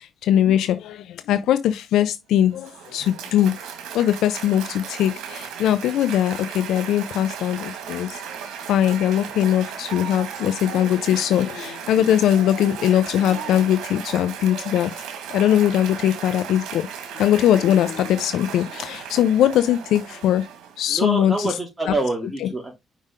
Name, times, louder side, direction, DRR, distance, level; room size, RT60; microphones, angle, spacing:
voice 1, 0.0-3.5 3.9-8.2 8.7-14.9 15.3-16.8 17.2-20.4 20.8-21.5 21.9-22.0 22.4-22.5, left 11 dB, 80° left, 0.5 m, -21 dB
Cheering / Applause, 2.4-21.0, right 8 dB, 90° right, 1.7 m, -36 dB
voice 2, 20.9-22.7, right 2 dB, 15° right, 3.8 m, -26 dB
5.5 x 5.0 x 3.6 m
cardioid pair, 90°, 0 cm